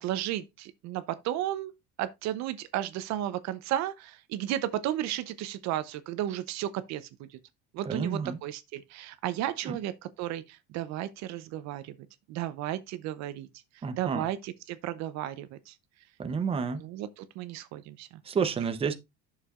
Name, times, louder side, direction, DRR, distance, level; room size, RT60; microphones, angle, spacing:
voice 1, 0.0-1.7 2.0-7.4 7.7-12.0 12.3-13.5 13.7-15.8 16.8-18.2, right 12 dB, 55° right, 0.7 m, -34 dB
voice 2, 7.9-8.4 9.7-9.8 13.8-14.3 16.2-16.9 18.2-18.9, right 6 dB, 20° right, 0.7 m, -30 dB
10.0 x 6.6 x 2.4 m
cardioid pair, 130°, 32 cm